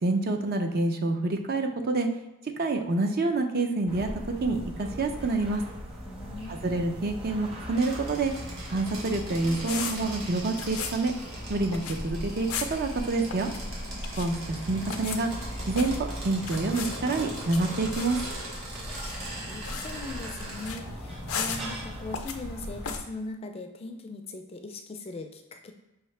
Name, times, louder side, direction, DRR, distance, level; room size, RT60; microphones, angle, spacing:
voice 1, 0.0-2.1 2.6-4.1 4.4-5.6 6.5-8.3 8.6-11.1 11.5-13.5 14.2-15.3 15.7-18.2, right 3 dB, 50° right, 5 dB, 0.5 m, -27 dB
sound 1, 3.9-23.0, equal, 25° right, 1.0 m, -39 dB
voice 2, 6.1-6.6 19.0-25.7, left 2 dB, 30° left, 5 dB, 0.4 m, -40 dB
sound 2, 7.7-20.7, right 2 dB, 70° right, 1.4 m, -41 dB
sound 3, 9.0-23.0, left 6 dB, 85° left, 0.5 m, -40 dB
5.6 x 2.8 x 3.2 m, 0.98 s
head